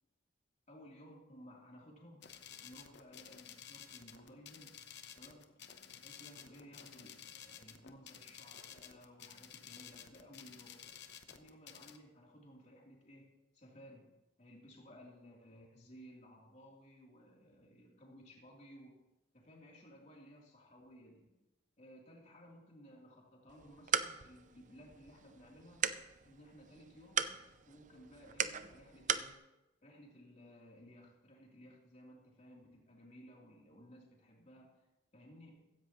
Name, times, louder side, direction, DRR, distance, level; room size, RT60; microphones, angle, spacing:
voice 1, 0.7-2.2 2.6-4.8 5.1-5.5 5.9-11.0 11.3-13.3 13.5-14.1 14.4-19.0 19.3-21.3 21.8-25.8 26.2-27.3 27.6-29.3 29.8-34.7 35.1-35.6, equal, 40° left, -2 dB, 3.4 m, -57 dB
sound 1, 2.2-12.0, left 9 dB, 60° left, 0.9 m, -53 dB
sound 2, 23.5-29.3, right 8 dB, 40° right, 0.6 m, -39 dB
16.0 x 15.5 x 3.1 m, 0.96 s
head